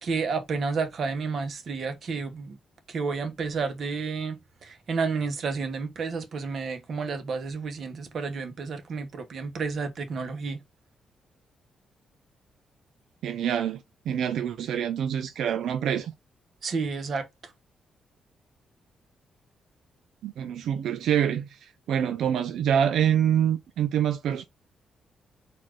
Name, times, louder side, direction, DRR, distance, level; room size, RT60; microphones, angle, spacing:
voice 1, 0.0-2.6 2.9-10.6 16.6-17.3, right 4 dB, 45° right, 1.0 m, -31 dB
voice 2, 13.2-16.1 20.2-24.4, right 9 dB, 80° right, 0.4 m, -26 dB
4.2 x 2.5 x 4.6 m
wide cardioid pair, 170°, 0 cm